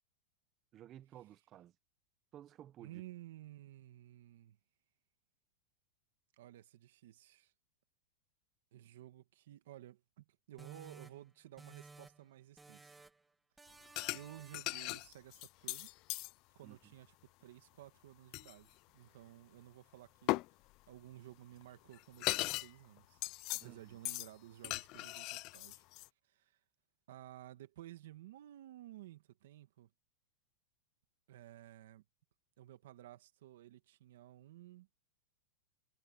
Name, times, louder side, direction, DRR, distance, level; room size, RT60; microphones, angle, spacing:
voice 1, 0.7-1.7 2.3-3.0 16.6-16.9 23.6-24.0, right 12 dB, 25° right, 0.9 m, -55 dB
voice 2, 2.8-4.6 6.4-7.5 8.7-13.0 14.1-15.9 16.6-20.5 20.9-23.2 23.5-25.8 26.2-26.6 27.1-29.9 31.3-32.0 32.6-34.9, right 14 dB, 70° right, 2.3 m, -55 dB
sound 1, 10.6-12.3 12.6-13.3 13.6-14.8, right 3 dB, 10° right, 2.4 m, -57 dB
sound 2, 14.0-14.2 14.5-16.3 18.3-18.5 20.3-20.5 21.6-21.7 21.9-22.7 23.0-23.7 24.1-24.3 24.6-26.1, left 22 dB, 35° left, 0.3 m, -38 dB
supercardioid pair, 160°, 0 cm